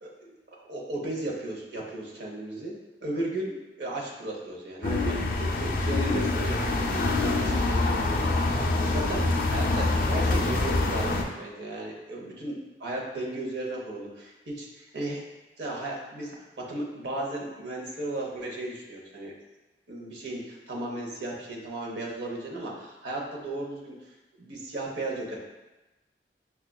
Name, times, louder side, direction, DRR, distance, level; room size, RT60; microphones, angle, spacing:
voice 1, 0.0-2.7 3.0-15.2 15.6-19.3 19.9-23.9 24.4-25.4, right 1 dB, 75° right, -3 dB, 0.7 m, -35 dB
sound 1, 4.8-11.2, left 2 dB, 50° left, 0.4 m, -25 dB
5.6 x 2.3 x 2.2 m, 1.1 s
head